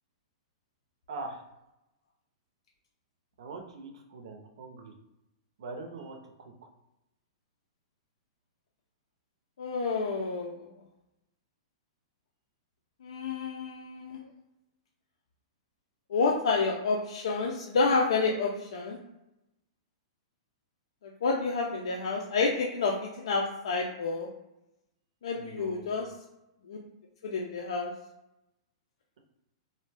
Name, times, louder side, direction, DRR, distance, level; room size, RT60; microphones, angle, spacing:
voice 1, 1.1-1.4 3.4-4.9 5.6-6.2 25.3-26.1, right 3 dB, 70° right, 3 dB, 0.6 m, -42 dB
voice 2, 9.6-10.7 13.0-14.2 16.1-19.0 21.2-24.3 25.2-26.1 26.7-26.8 27.2-27.9, left 4 dB, 80° left, -1 dB, 0.4 m, -29 dB
2.6 x 2.1 x 3.3 m, 0.91 s
hypercardioid pair, 155°, 3 cm